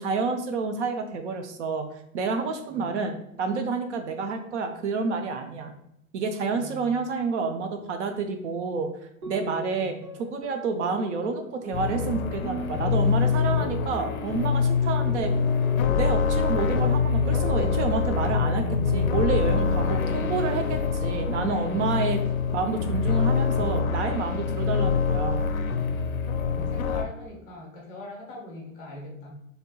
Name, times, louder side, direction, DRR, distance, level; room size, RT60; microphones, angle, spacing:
voice 1, 0.0-1.9 2.1-5.7 6.1-8.9 9.3-15.3 16.0-22.2 22.5-25.5, right 4 dB, 55° right, 6 dB, 0.5 m, -29 dB
voice 2, 2.7-3.0 6.5-7.1 9.2-10.1 19.8-20.6 26.4-29.3, left 1 dB, 20° left, -1 dB, 0.5 m, -42 dB
sound 1, 9.2-19.7 20.0-21.3 21.6-22.2, right 1 dB, 80° right, 1.2 m, -41 dB
sound 2, 11.7-27.0, left 5 dB, 75° left, 0.5 m, -25 dB
3.2 x 2.7 x 2.2 m, 0.78 s
figure-of-eight pair, 110°, 43 cm